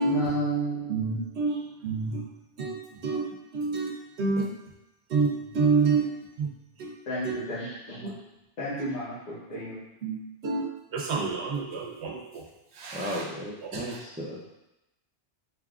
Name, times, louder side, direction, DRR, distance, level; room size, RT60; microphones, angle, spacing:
voice 1, 0.0-1.2 1.5-1.6 7.0-8.1 8.6-9.8, right 1 dB, 90° left, -12 dB, 1.4 m, -32 dB
voice 2, 0.9-1.6 1.8-2.2 2.6-3.3 3.5-3.9 4.2-4.5 5.1-6.1 6.4-6.5 6.8-6.9 7.2-7.4 8.0-8.1 9.6-9.7 10.0-12.4 12.7-13.3 13.6-14.0, right 4 dB, 75° right, 1 dB, 1.0 m, -28 dB
voice 3, 12.9-14.5, equal, 15° right, -4 dB, 0.3 m, -35 dB
4.5 x 3.5 x 2.4 m, 0.95 s
omnidirectional pair, 1.1 m